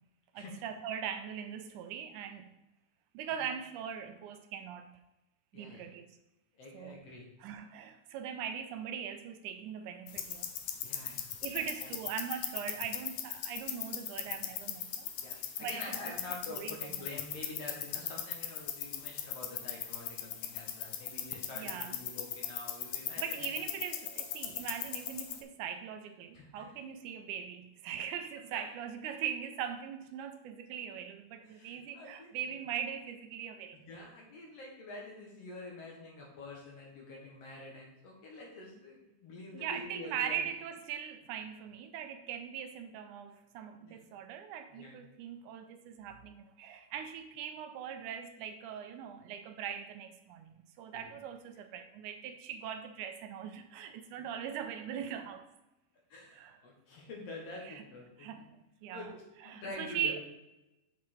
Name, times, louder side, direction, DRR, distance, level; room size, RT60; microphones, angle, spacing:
voice 1, 0.3-2.5 3.1-4.9 5.5-6.2 6.7-7.0 7.4-10.5 11.4-16.1 16.5-16.8 21.5-22.0 23.2-33.8 39.5-55.5 56.3-56.6 57.7-57.8 58.2-59.1 59.4-60.2, right 8 dB, 80° right, 7 dB, 2.0 m, -41 dB
voice 2, 5.5-5.9 6.5-7.3 10.8-11.9 15.2-23.7 26.3-26.7 28.5-28.6 31.4-32.3 33.7-40.5 43.8-44.0 44.7-45.0 50.9-51.1 56.1-58.5 58.9-60.2, left 2 dB, 60° left, -1 dB, 2.2 m, -47 dB
sound 1, 10.1-25.4, left 10 dB, 75° left, 1.8 m, -39 dB
6.1 x 5.6 x 4.4 m, 0.94 s
omnidirectional pair, 3.6 m